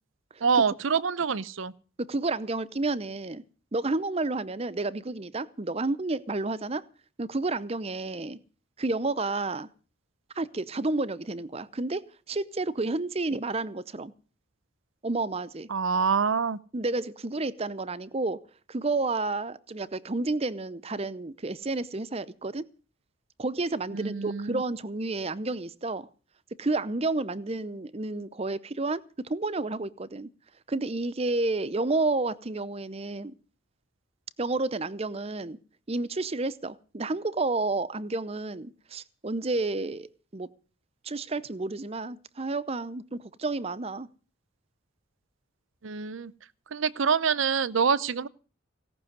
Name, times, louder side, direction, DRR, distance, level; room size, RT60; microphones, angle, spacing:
voice 1, 0.4-1.7 15.7-16.6 23.9-24.6 45.8-46.3 46.7-48.3, right 6 dB, 75° right, 0.6 m, -26 dB
voice 2, 2.0-3.4 3.7-6.8 7.2-8.4 8.8-9.7 10.4-14.1 15.0-15.7 16.7-18.4 18.7-22.6 23.4-26.1 26.6-30.3 30.7-33.3 34.4-35.6 35.9-40.1 40.3-40.5 41.0-44.1, right 3 dB, 30° right, 0.7 m, -30 dB
17.5 x 6.2 x 9.4 m
head